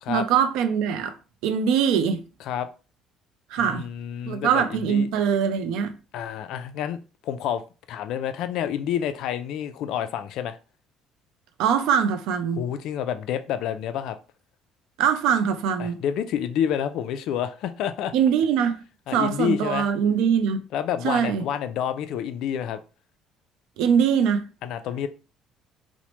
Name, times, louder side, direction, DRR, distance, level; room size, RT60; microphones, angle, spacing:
voice 1, 0.1-1.1 1.4-2.2 3.5-3.9 4.3-5.9 11.6-12.6 15.0-16.0 18.1-18.8 19.1-20.6 21.0-21.4 23.8-24.4, right 7 dB, 85° right, 0.4 m, -22 dB
voice 2, 3.6-5.1 6.1-7.6 7.9-10.6 12.6-14.2 15.8-18.1 19.1-19.9 20.7-22.8 24.6-25.1, left 9 dB, 65° left, 0.3 m, -28 dB
3.0 x 2.0 x 2.9 m
cardioid pair, 155°, 0 cm